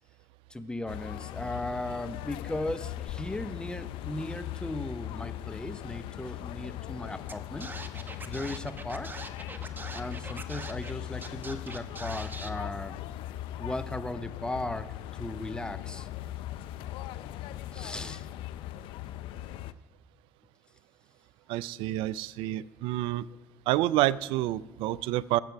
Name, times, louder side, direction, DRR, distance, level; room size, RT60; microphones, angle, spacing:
voice 1, 0.5-9.1 9.9-13.0 13.6-16.1 17.7-18.3, left 1 dB, 10° left, 10 dB, 0.9 m, -37 dB
sound 1, 0.9-19.7, left 13 dB, 70° left, 0.5 m, -39 dB
Scratching (performance technique), 7.3-7.4 7.6-10.9 11.2-12.5, right 3 dB, 20° right, 1.2 m, -42 dB
voice 2, 21.5-23.3 23.7-25.4, right 15 dB, 75° right, 20 dB, 0.4 m, -28 dB
20.0 x 7.6 x 4.7 m, 1.1 s
hypercardioid pair, 65°, 9 cm